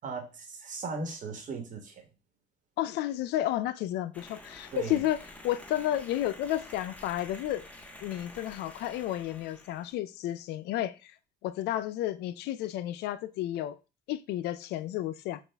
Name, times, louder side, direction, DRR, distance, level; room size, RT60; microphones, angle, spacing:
voice 1, 0.0-2.1 4.7-5.0, right 4 dB, 50° right, 1.2 m, -37 dB
voice 2, 2.8-5.2 5.4-7.7 8.0-11.1 11.4-13.8 14.1-15.4, left 13 dB, 80° left, 0.4 m, -32 dB
sound 1, 4.1-9.9, left 1 dB, 10° left, 0.8 m, -49 dB
6.6 x 2.4 x 3.4 m
cardioid pair, 110°, 17 cm